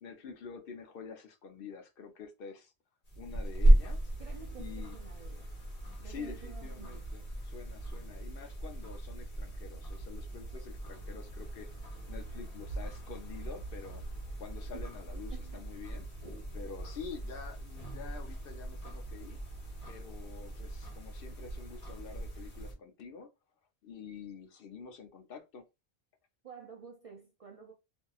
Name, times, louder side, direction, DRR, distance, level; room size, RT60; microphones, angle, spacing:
voice 1, 0.0-2.7 3.2-4.0 4.6-5.0 6.0-11.7 12.1-14.0 14.4-16.1 16.5-19.4 19.9-23.3 23.8-25.6, left 6 dB, 65° left, 0.7 m, -47 dB
sound 1, 3.1-22.7, right 1 dB, 40° left, 1.0 m, -34 dB
voice 2, 4.2-5.6 6.0-7.2 14.7-15.0 15.3-15.9 26.4-27.7, right 7 dB, 55° right, 0.4 m, -51 dB
2.7 x 2.6 x 2.3 m
omnidirectional pair, 1.1 m